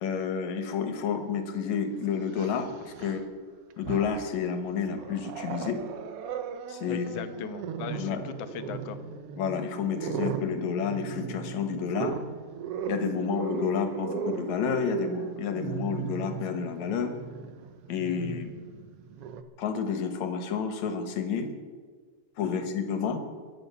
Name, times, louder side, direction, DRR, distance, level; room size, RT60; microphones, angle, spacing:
voice 1, 0.0-3.2 3.8-5.8 6.7-7.3 8.0-8.2 9.4-12.2 12.9-17.1 17.9-18.5 19.6-21.5 22.4-23.2, left 6 dB, 65° left, 7 dB, 2.7 m, -30 dB
Growling, 1.2-1.3 2.2-3.3 3.7-4.4 4.8-19.4, right 7 dB, 70° right, 1.5 m, -37 dB
voice 2, 6.9-9.0 13.3-13.4 22.4-22.7, left 9 dB, 80° left, 10 dB, 2.3 m, -39 dB
23.0 x 8.4 x 7.0 m, 1.5 s
omnidirectional pair, 3.6 m